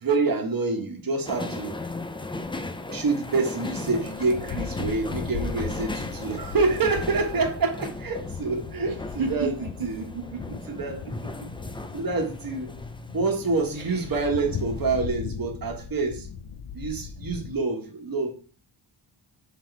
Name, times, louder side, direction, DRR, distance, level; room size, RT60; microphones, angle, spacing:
voice 1, 0.0-1.8 2.9-9.5 9.8-10.0 10.7-11.0 11.9-12.7 13.1-16.3 16.7-18.3, right 3 dB, 45° right, 1.3 m, -27 dB
sound 1, 1.2-14.9, left 2 dB, 10° left, 0.4 m, -37 dB
sound 2, 3.7-17.5, left 6 dB, 70° left, 0.7 m, -38 dB
voice 2, 8.9-10.8 11.0-11.1 11.4-11.5 13.7-14.1, right 2 dB, 85° right, 1.5 m, -34 dB
6.1 x 4.1 x 4.6 m
wide cardioid pair, 115°, 49 cm